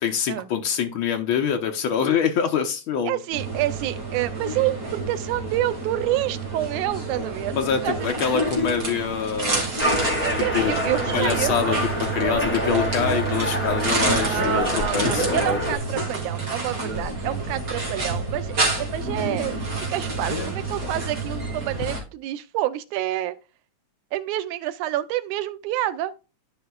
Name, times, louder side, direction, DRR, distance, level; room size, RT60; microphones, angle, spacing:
voice 1, 0.0-3.2 7.5-9.7 10.5-10.7 11.1-15.6, left 7 dB, 90° left, 1.1 m, -25 dB
voice 2, 3.1-7.6 7.8-8.1 10.2-11.6 14.2-19.6 19.9-23.4 24.1-26.1, right 13 dB, 85° right, 2.2 m, -28 dB
sound 1, 3.3-22.0, right 3 dB, 30° right, 2.4 m, -28 dB
sound 2, 9.8-15.8, equal, 5° left, 0.9 m, -27 dB
12.5 x 5.1 x 2.3 m
omnidirectional pair, 3.4 m